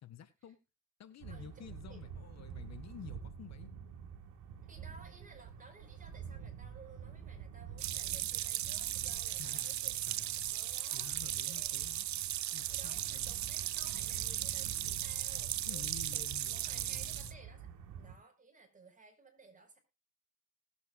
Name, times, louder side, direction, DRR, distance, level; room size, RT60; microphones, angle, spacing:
voice 1, 0.0-0.6 1.0-3.7 9.4-10.5 10.9-12.1 12.5-13.3 15.6-17.4, left 9 dB, 60° left, 11 dB, 1.6 m, -51 dB
sound 1, 1.2-18.1, right 7 dB, 90° right, 2.2 m, -48 dB
voice 2, 1.3-2.0 4.7-9.9 10.5-11.1 11.5-11.8 12.7-16.3 16.5-17.7 18.0-19.8, right 3 dB, 25° right, 4 dB, 4.9 m, -57 dB
sound 2, 7.8-17.3, right 13 dB, 65° right, 0.8 m, -37 dB
19.5 x 8.2 x 2.4 m, 0.27 s
cardioid pair, 90°, 30 cm